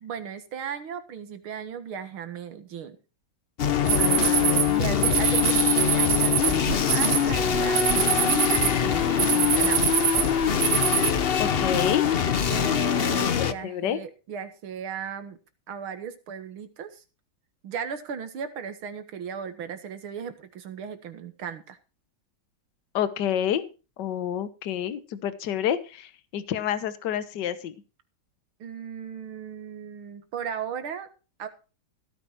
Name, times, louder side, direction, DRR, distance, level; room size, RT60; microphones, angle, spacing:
voice 1, 0.0-3.0 3.8-9.8 12.5-15.4 15.7-17.0 17.6-21.8 28.6-31.1 31.4-31.5, right 7 dB, 80° right, 9 dB, 2.4 m, -36 dB
sound 1, 3.6-13.5, left 8 dB, 75° left, 0.5 m, -23 dB
sound 2, 3.9-11.1, right 9 dB, 60° right, 1.6 m, -25 dB
voice 2, 4.0-5.1 11.4-12.1 12.5-12.7 13.2-14.0 22.9-23.7 24.0-27.7, left 10 dB, 60° left, 14 dB, 1.6 m, -29 dB
16.5 x 9.5 x 4.5 m, 0.33 s
omnidirectional pair, 2.3 m